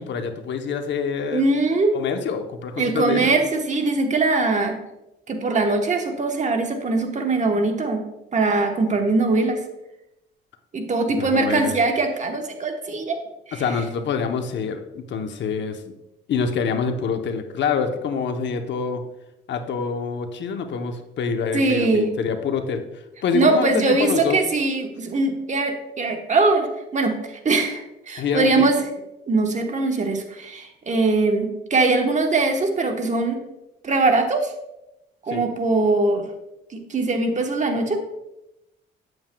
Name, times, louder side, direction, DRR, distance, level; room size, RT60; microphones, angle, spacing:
voice 1, 0.0-1.5 1.9-3.3 11.2-11.7 13.5-15.8 16.3-19.0 19.5-22.8 23.2-24.4 28.2-28.7 35.3-35.4, left 6 dB, 65° left, 7 dB, 0.8 m, -26 dB
voice 2, 1.3-1.9 2.8-4.8 5.3-8.0 8.3-9.6 10.7-13.2 13.5-13.6 21.5-22.1 23.3-26.7 26.9-28.8 29.3-33.4 33.8-34.5 35.2-36.3 36.7-38.0, right 3 dB, 35° right, 4 dB, 1.1 m, -21 dB
8.7 x 7.9 x 2.2 m, 0.91 s
cardioid pair, 90°, 20 cm